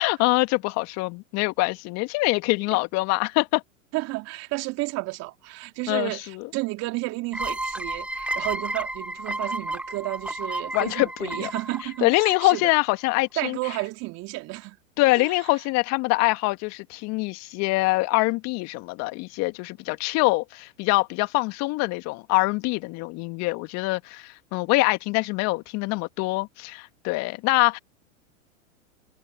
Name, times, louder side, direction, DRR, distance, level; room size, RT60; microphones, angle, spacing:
voice 1, 0.0-3.6 5.9-6.1 10.7-11.5 12.0-13.6 15.0-27.8, left 24 dB, 40° left, 2.0 m, -24 dB
voice 2, 3.9-12.7 13.4-14.8 15.2-15.3, right 22 dB, 40° right, 2.9 m, -32 dB
sound 1, 7.3-12.8, right 1 dB, 5° right, 2.6 m, -32 dB
hypercardioid pair, 105°, 40 cm